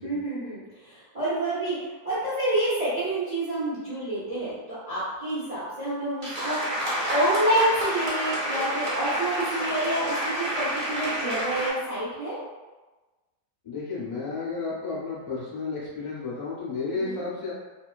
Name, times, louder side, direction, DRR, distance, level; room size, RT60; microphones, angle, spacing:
voice 1, 0.0-1.8 2.0-12.4 16.9-17.2, right 1 dB, 55° right, -10 dB, 0.4 m, -28 dB
sound 1, 6.2-11.7, equal, 40° right, 0.8 m, -29 dB
voice 2, 13.6-17.5, left 4 dB, 45° left, -7 dB, 0.4 m, -32 dB
2.7 x 2.3 x 2.4 m, 1.2 s
omnidirectional pair, 1.8 m